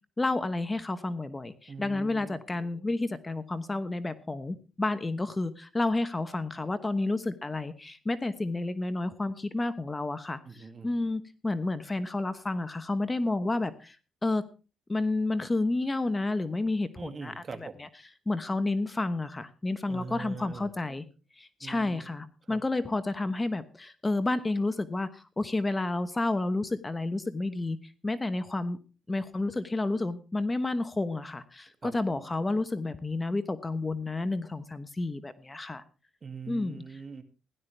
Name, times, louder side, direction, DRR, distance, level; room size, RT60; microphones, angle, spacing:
voice 1, 0.2-14.0 14.2-14.4 14.9-17.3 18.3-21.0 21.4-27.8 28.0-28.8 29.1-35.8 36.5-36.8, left 2 dB, 20° left, 12 dB, 1.1 m, -30 dB
voice 2, 1.7-2.4 10.4-10.9 16.9-17.8 19.9-20.7 21.6-22.1 22.4-22.9 31.8-32.3 36.2-37.2, right 5 dB, 40° right, 9 dB, 2.2 m, -43 dB
16.5 x 11.5 x 3.4 m, 0.33 s
cardioid pair, 90°, 0 cm